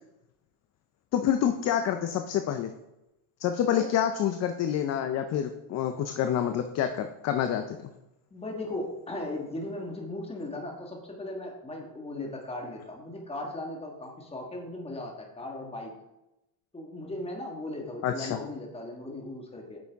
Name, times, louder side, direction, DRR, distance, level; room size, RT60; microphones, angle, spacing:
voice 1, 1.1-2.7 3.4-7.9 18.0-18.4, left 9 dB, 35° left, 8 dB, 0.5 m, -27 dB
voice 2, 8.3-15.9 16.7-19.8, left 2 dB, 10° left, 1 dB, 1.5 m, -37 dB
8.7 x 6.9 x 3.5 m, 0.92 s
cardioid pair, 135°, 48 cm